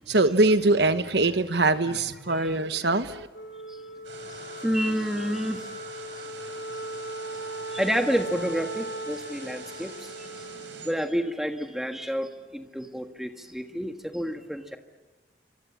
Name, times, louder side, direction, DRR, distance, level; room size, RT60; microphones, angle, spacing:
voice 1, 0.0-3.3, right 2 dB, 65° right, 10 dB, 1.2 m, -23 dB
Wind instrument woodwind instrument, 3.3-11.9, right 1 dB, 60° left, 3.7 m, -39 dB
sound 1, 4.0-10.9, right 4 dB, 85° right, 6.5 m, -45 dB
voice 2, 4.6-5.6 7.7-10.3 10.8-14.8, equal, ahead, 5 dB, 1.6 m, -29 dB
27.5 x 25.5 x 7.4 m, 1.1 s
head